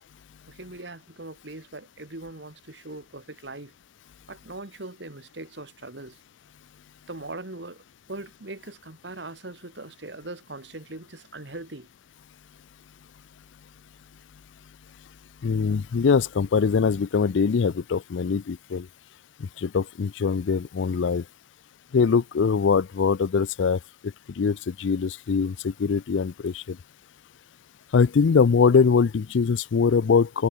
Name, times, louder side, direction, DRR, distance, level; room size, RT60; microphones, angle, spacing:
voice 1, 0.5-3.7 4.3-6.2 7.1-11.9, right 2 dB, 70° right, 2.4 m, -40 dB
voice 2, 15.4-18.9 19.4-21.2 21.9-23.8 24.4-26.8 27.9-30.5, left 5 dB, 90° left, 0.4 m, -22 dB
head